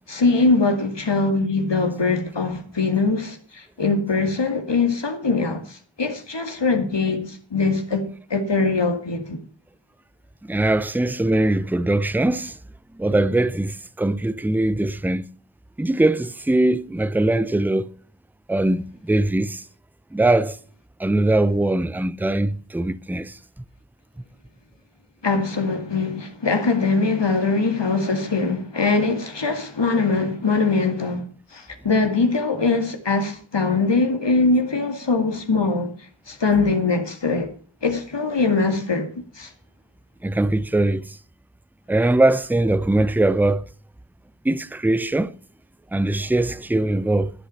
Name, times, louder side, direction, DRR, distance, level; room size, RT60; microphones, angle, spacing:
voice 1, 0.1-9.4 25.2-31.2 31.5-35.9 36.3-37.5 37.8-39.1 39.4-39.5, left 3 dB, 65° left, 2.4 m, -22 dB
voice 2, 10.5-12.5 13.0-15.2 15.8-17.8 18.5-19.6 20.1-20.6 21.0-23.3 40.2-41.0 41.9-43.6 44.4-45.3 45.9-47.3, right 2 dB, 5° right, 0.6 m, -21 dB
11.0 x 10.5 x 5.7 m
wide cardioid pair, 40°, 46 cm